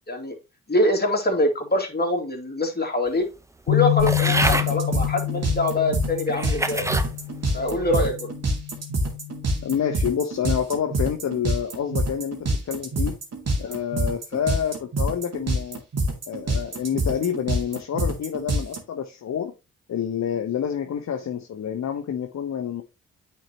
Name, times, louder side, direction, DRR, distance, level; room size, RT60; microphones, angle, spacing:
voice 1, 0.7-3.3 3.7-6.8 7.5-8.3, left 1 dB, 25° left, 2.5 m, -24 dB
sound 1, 3.7-9.9, left 23 dB, 70° left, 0.7 m, -28 dB
sound 2, 4.0-18.8, right 1 dB, 45° right, 2.2 m, -26 dB
sound 3, 4.1-4.7 5.5-5.6 6.3-7.1 7.7-8.1, right 2 dB, 10° right, 0.9 m, -26 dB
voice 2, 9.6-13.1 13.6-15.8 16.3-19.5 19.9-22.8, left 8 dB, 50° left, 1.0 m, -28 dB
9.0 x 4.4 x 2.9 m
hypercardioid pair, 40°, 35 cm